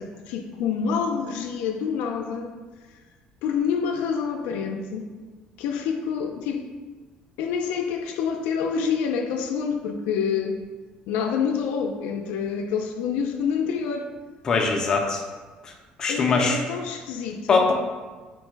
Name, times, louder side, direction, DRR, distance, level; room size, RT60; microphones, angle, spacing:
voice 1, 0.0-2.5 3.4-5.1 5.6-6.7 7.4-10.6 11.1-14.1 16.1-17.7, left 6 dB, 85° left, 4 dB, 0.4 m, -27 dB
voice 2, 14.4-15.2 15.6-15.7 16.0-16.6 17.5-17.7, left 4 dB, 25° left, 2 dB, 0.4 m, -21 dB
4.4 x 2.1 x 4.5 m, 1.3 s
cardioid pair, 170°, 3 cm